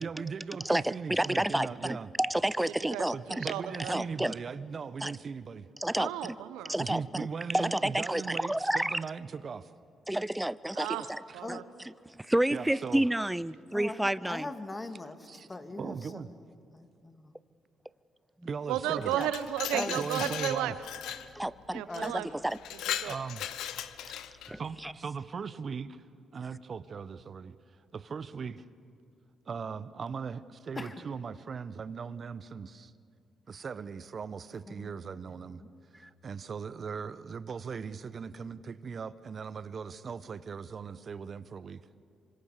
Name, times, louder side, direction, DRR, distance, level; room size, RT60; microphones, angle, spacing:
voice 1, 0.0-2.1 3.1-5.7 6.8-9.7 11.3-11.4 12.5-13.0 15.3-15.4 15.8-16.3 18.4-19.1 19.9-20.7 23.0-23.6 24.5-26.1 26.3-27.6 27.9-28.6 29.5-32.9 33.5-35.6 35.9-41.8, right 5 dB, 50° right, 15 dB, 1.1 m, -39 dB
voice 2, 0.6-3.4 3.9-4.3 5.0-5.1 5.8-6.4 6.7-7.3 7.5-9.0 10.1-11.0 11.5-11.6 12.2-14.5 19.2-19.3 19.7-20.0 21.4-22.1 22.4-22.6 24.5-24.9, right 1 dB, 10° right, 19 dB, 0.7 m, -30 dB
voice 3, 2.8-4.0 6.0-6.8 10.7-11.6 18.7-20.8 21.7-22.3 22.7-23.1, right 12 dB, 85° right, 13 dB, 1.1 m, -34 dB
voice 4, 13.7-15.2 15.5-16.5 16.7-17.3 19.7-20.0 21.9-22.3 30.7-31.0 34.7-35.9, left 2 dB, 25° left, 8 dB, 2.5 m, -42 dB
Glass, 19.0-21.3 21.9-22.1 22.5-24.5, left 11 dB, 80° left, 1.0 m, -37 dB
26.5 x 25.0 x 6.8 m, 2.6 s
hypercardioid pair, 50°, 0 cm